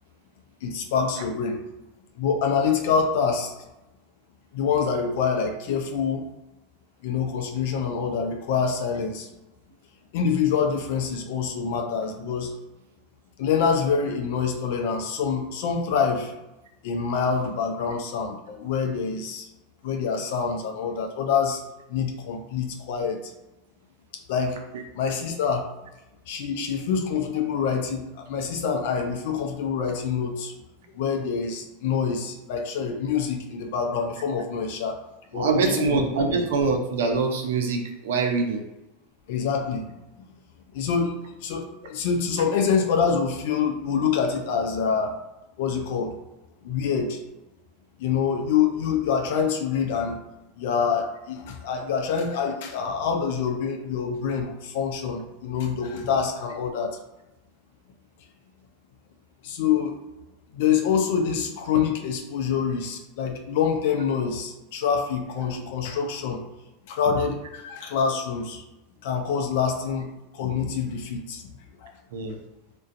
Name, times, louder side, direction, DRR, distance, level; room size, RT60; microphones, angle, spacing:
voice 1, 0.6-1.6 2.2-3.5 4.5-6.2 7.0-9.3 10.1-12.5 13.4-16.3 16.8-19.5 19.8-21.6 21.9-23.3 24.3-24.6 24.9-25.7 26.3-30.5 30.9-35.0 35.3-36.0 36.3-36.4 39.3-39.9 40.7-45.2 45.6-46.1 46.6-47.2 48.0-50.2 50.6-57.0 59.4-60.0 60.5-66.4 66.9-68.6 69.0-71.4 71.8-71.9, left 6 dB, 70° left, 2 dB, 0.4 m, -26 dB
voice 2, 35.3-38.6 62.5-62.6 72.1-72.4, right 4 dB, 80° right, 4 dB, 0.4 m, -24 dB
2.4 x 2.2 x 2.5 m, 0.98 s
hypercardioid pair, 100°, 0 cm